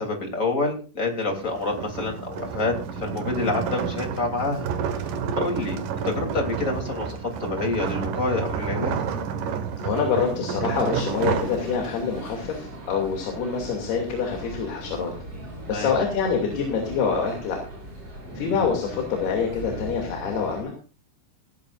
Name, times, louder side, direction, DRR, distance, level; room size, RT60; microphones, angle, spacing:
voice 1, 0.0-4.7 5.4-8.9 15.7-15.9, left 3 dB, 20° left, 2 dB, 2.3 m, -27 dB
sound 1, 1.2-12.2, right 6 dB, 65° right, 2.2 m, -30 dB
voice 2, 9.8-15.1 15.7-17.6 18.3-20.7, left 6 dB, 55° left, 1 dB, 4.3 m, -26 dB
sound 2, 11.1-20.6, right 1 dB, 20° right, 5.9 m, -39 dB
17.0 x 16.5 x 2.5 m, 0.35 s
omnidirectional pair, 5.8 m